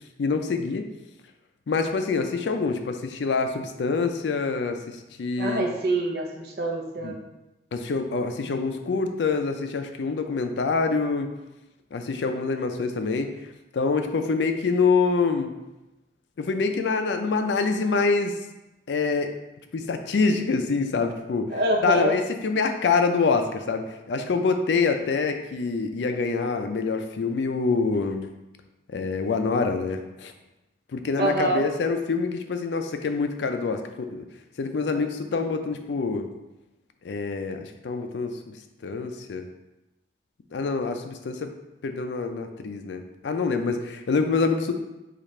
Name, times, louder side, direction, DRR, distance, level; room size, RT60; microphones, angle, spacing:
voice 1, 0.2-0.8 1.7-5.7 7.0-7.1 7.7-11.3 11.9-13.3 13.7-15.5 16.4-18.3 18.9-19.3 19.7-21.5 21.8-28.3 28.9-30.3 30.9-34.2 34.6-36.3 37.0-38.5 38.8-39.5 40.5-41.5 41.8-44.7, left 4 dB, 80° left, 7 dB, 0.4 m, -26 dB
voice 2, 5.4-7.2 21.5-22.1 31.2-31.6, right 1 dB, 60° right, 1 dB, 0.7 m, -25 dB
5.0 x 2.4 x 4.2 m, 0.98 s
head